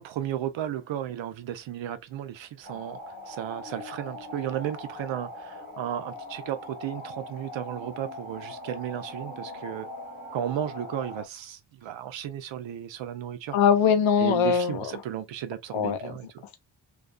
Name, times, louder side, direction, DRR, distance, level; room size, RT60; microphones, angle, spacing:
voice 1, 0.0-9.9 10.3-13.6 14.2-16.4, right 10 dB, 75° right, 0.6 m, -34 dB
sound 1, 2.6-11.3, left 1 dB, 15° left, 0.9 m, -41 dB
voice 2, 13.5-14.8 15.7-16.1, left 7 dB, 85° left, 0.7 m, -22 dB
2.4 x 2.2 x 2.4 m
cardioid pair, 105°, 45 cm